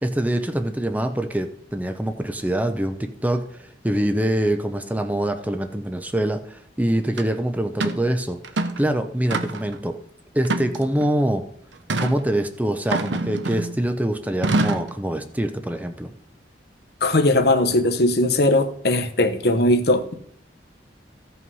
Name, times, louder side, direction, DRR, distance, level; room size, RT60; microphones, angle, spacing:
voice 1, 0.0-3.0 3.2-10.0 10.3-11.4 12.0-16.1, right 1 dB, 10° right, 0.6 m, -24 dB
sound 1, 7.2-7.3 7.8-8.0 8.4-8.9 9.3-9.8 10.4-11.1 11.9-12.2 12.9-13.8 14.4-14.9, right 2 dB, 85° right, 0.9 m, -25 dB
voice 2, 17.0-20.1, left 1 dB, 60° left, 0.9 m, -19 dB
14.0 x 5.7 x 5.5 m
head